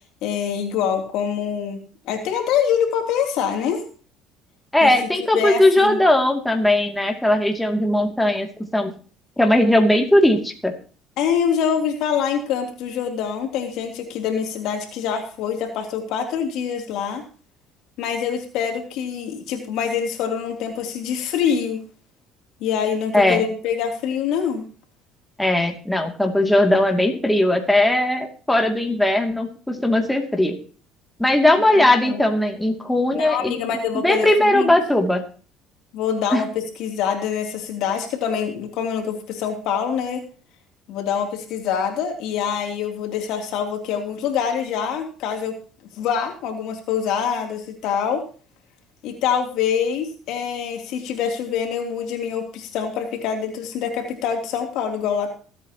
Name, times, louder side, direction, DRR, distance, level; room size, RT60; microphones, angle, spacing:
voice 1, 0.2-3.8 4.8-4.9 5.3-6.0 11.2-17.2 18.0-21.8 22.6-24.6 31.6-32.2 33.1-34.7 35.9-36.5 36.8-40.2 40.9-45.5 45.9-48.2 49.0-55.3, left 7 dB, 70° left, 3 dB, 3.1 m, -25 dB
voice 2, 4.7-8.5 8.7-8.9 9.4-10.7 23.1-23.4 25.4-30.6 31.2-33.6 34.0-35.2 36.3-36.4, left 1 dB, 5° left, 2 dB, 2.6 m, -18 dB
24.0 x 8.8 x 3.0 m, 0.40 s
supercardioid pair, 85°, 0 cm